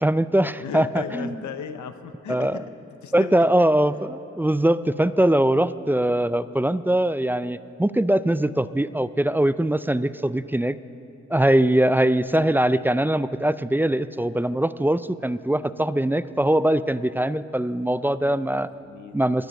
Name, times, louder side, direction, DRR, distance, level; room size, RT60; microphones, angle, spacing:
voice 1, 0.0-1.3 2.3-2.6 3.1-10.8 11.3-18.7 19.1-19.5, right 1 dB, 5° right, 15 dB, 0.3 m, -22 dB
voice 2, 0.6-2.6 3.0-3.5 18.7-19.2, left 7 dB, 75° left, 9 dB, 0.8 m, -36 dB
21.0 x 8.0 x 6.4 m, 2.7 s
cardioid pair, 70°, 29 cm